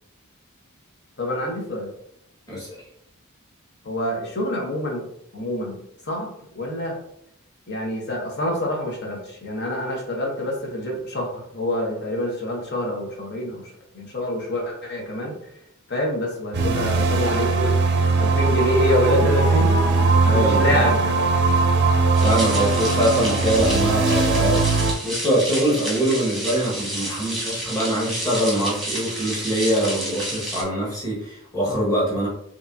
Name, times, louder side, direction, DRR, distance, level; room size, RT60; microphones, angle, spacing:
voice 1, 1.2-1.9 3.8-5.1 5.3-6.3 6.5-7.0 7.7-15.3 15.9-21.2, left 1 dB, 50° left, 0 dB, 1.1 m, -26 dB
voice 2, 2.5-2.8 20.2-20.9 22.2-24.7 25.0-32.3, equal, 15° left, -6 dB, 1.6 m, -23 dB
sound 1, 16.5-24.9, right 3 dB, 50° right, 0.6 m, -20 dB
sound 2, 22.1-30.6, right 1 dB, ahead, 1.3 m, -30 dB
4.8 x 3.1 x 2.7 m, 0.75 s
head